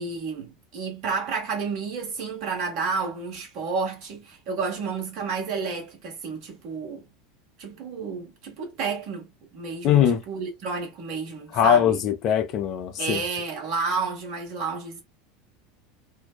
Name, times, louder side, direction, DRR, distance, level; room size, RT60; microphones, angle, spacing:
voice 1, 0.0-7.1 7.6-12.0 13.0-15.0, right 4 dB, 55° right, 1.3 m, -31 dB
voice 2, 9.8-10.2 11.5-13.2, left 9 dB, 50° left, 0.6 m, -21 dB
2.7 x 2.1 x 2.2 m
hypercardioid pair, 80°, 0 cm